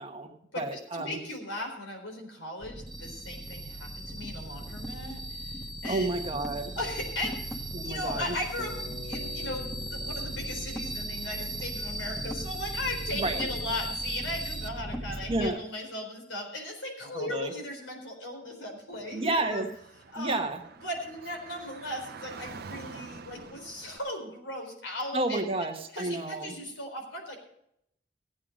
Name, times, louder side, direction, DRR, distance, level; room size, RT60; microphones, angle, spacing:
voice 1, 0.0-1.2 5.9-6.8 7.7-8.4 13.1-13.5 15.3-15.6 17.1-17.5 19.1-19.7 20.1-20.6 25.1-26.5, right 2 dB, 30° right, 4 dB, 1.3 m, -31 dB
voice 2, 0.5-6.1 6.8-19.6 20.1-20.4 20.8-25.5 25.9-27.4, left 1 dB, 90° left, 3 dB, 4.1 m, -37 dB
sound 1, 2.6-15.5, right 1 dB, ahead, 1.5 m, -37 dB
Bass guitar, 8.6-12.9, left 2 dB, 20° left, 2.4 m, -49 dB
Car / Traffic noise roadway noise, 18.9-24.0, right 5 dB, 55° right, 0.7 m, -47 dB
16.0 x 8.9 x 5.1 m, 0.74 s
head